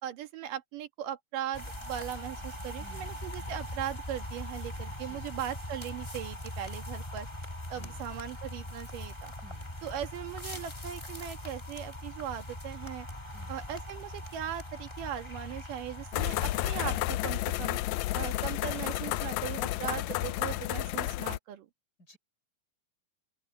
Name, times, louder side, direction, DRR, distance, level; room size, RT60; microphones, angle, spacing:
voice 1, 0.0-7.3 7.7-9.3 9.8-13.1 13.5-17.8 18.1-21.7, right 10 dB, 85° right, 3.2 m, -39 dB
sound 1, 1.5-17.0, left 1 dB, 15° left, 1.3 m, -41 dB
voice 2, 2.8-3.7 4.8-5.4 7.6-8.2 9.4-9.8 13.3-13.7 22.0-22.2, equal, 30° left, 5.0 m, -56 dB
sound 2, 16.1-21.4, left 16 dB, 80° left, 1.6 m, -31 dB
open air
omnidirectional pair, 3.7 m